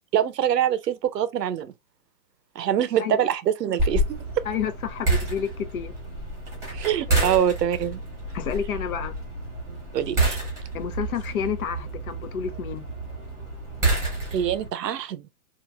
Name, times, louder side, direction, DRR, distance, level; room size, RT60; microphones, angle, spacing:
voice 1, 0.1-1.7 2.6-4.0 4.4-4.5 6.7-8.0 9.9-10.4 14.3-15.3, right 10 dB, 85° right, 0.7 m, -24 dB
sound 1, 3.8-14.7, right 2 dB, 5° right, 1.0 m, -29 dB
voice 2, 4.4-5.9 7.1-7.4 8.3-9.2 10.7-12.9, left 8 dB, 60° left, 0.7 m, -30 dB
2.9 x 2.5 x 2.3 m
hypercardioid pair, 160°, 47 cm